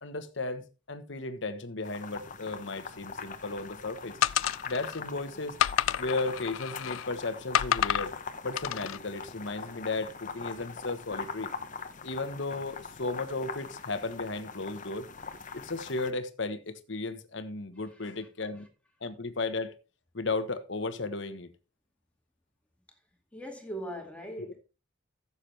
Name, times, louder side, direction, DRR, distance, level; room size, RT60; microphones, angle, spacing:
voice 1, 0.0-4.2 4.7-5.6 6.0-8.1 8.4-11.5 12.0-15.1 15.5-18.7 19.0-19.7 20.1-21.5, left 3 dB, 65° left, 1.2 m, -35 dB
sound 1, 1.8-16.1, left 5 dB, 40° left, 0.9 m, -42 dB
Coin Drops, 4.2-5.0 5.6-7.1 7.5-8.1 8.6-9.0, left 10 dB, 90° left, 0.4 m, -29 dB
voice 2, 17.8-18.7 22.9-23.0 23.3-24.6, right 1 dB, 5° left, 2.2 m, -42 dB
14.5 x 7.2 x 3.3 m
head